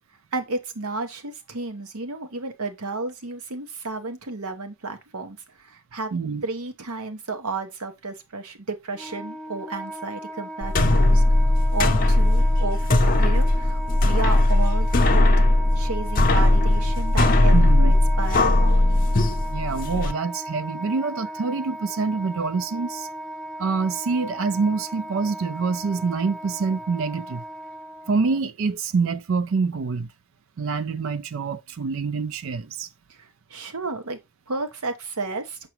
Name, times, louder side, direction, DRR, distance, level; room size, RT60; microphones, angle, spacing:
voice 1, 0.3-5.4 5.6-6.1 6.4-11.2 11.7-15.3 15.8-19.1 33.5-34.2 34.5-35.6, right 3 dB, 80° right, 1.1 m, -32 dB
voice 2, 6.1-6.4 17.5-17.9 19.4-23.1 23.6-27.4 28.1-30.1 30.6-32.9, right 4 dB, 60° right, 0.4 m, -26 dB
Wind instrument woodwind instrument, 8.9-28.4, right 1 dB, ahead, 0.7 m, -36 dB
sound 1, 10.6-20.1, left 1 dB, 40° left, 0.7 m, -18 dB
5.9 x 5.8 x 3.0 m
head